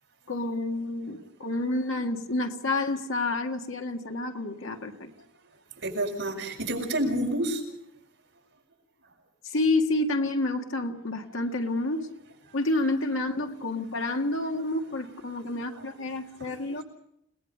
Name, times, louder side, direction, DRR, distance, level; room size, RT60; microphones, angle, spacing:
voice 1, 0.3-5.1 9.4-12.1 12.5-16.8, left 2 dB, 70° left, 4 dB, 1.8 m, -29 dB
voice 2, 5.8-7.6 12.5-12.6 15.3-15.9 16.4-16.5, right 1 dB, 65° right, 0 dB, 6.4 m, -30 dB
29.5 x 19.0 x 5.5 m, 0.79 s
head